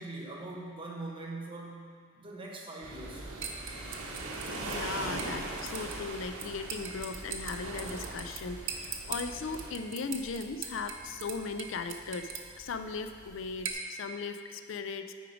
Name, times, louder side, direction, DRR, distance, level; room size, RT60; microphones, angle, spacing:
voice 1, 0.0-3.3, right 2 dB, 25° right, -2 dB, 1.1 m, -42 dB
sound 1, 2.8-9.7, right 2 dB, 85° right, 1.1 m, -40 dB
sound 2, 3.2-13.7, right 6 dB, 60° right, 0.8 m, -43 dB
voice 2, 4.5-12.3 12.6-15.1, left 4 dB, 60° left, 8 dB, 0.4 m, -38 dB
8.9 x 5.0 x 5.0 m, 2.1 s
head